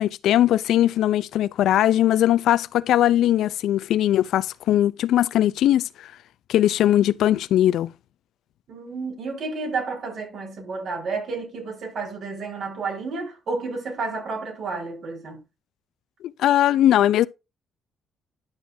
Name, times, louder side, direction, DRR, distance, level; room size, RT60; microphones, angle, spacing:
voice 1, 0.0-6.1 6.5-7.9 16.2-17.3, left 12 dB, 80° left, 0.5 m, -20 dB
voice 2, 8.7-15.4, right 4 dB, 65° right, 4.4 m, -31 dB
11.5 x 6.3 x 2.7 m
cardioid pair, 90°, 0 cm